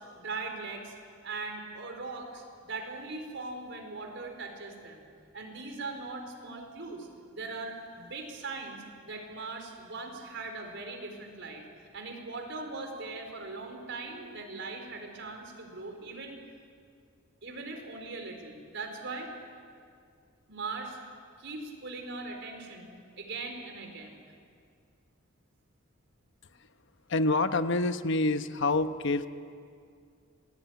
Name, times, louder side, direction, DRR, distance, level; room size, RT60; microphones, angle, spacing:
voice 1, 0.2-0.9 1.2-5.0 5.3-11.6 11.9-16.4 17.4-19.3 20.5-21.0 21.4-22.9 23.2-24.2, right 3 dB, 65° right, 3 dB, 4.6 m, -40 dB
voice 2, 27.1-29.3, left 2 dB, 65° left, 10 dB, 1.0 m, -27 dB
26.5 x 19.5 x 9.5 m, 2.3 s
head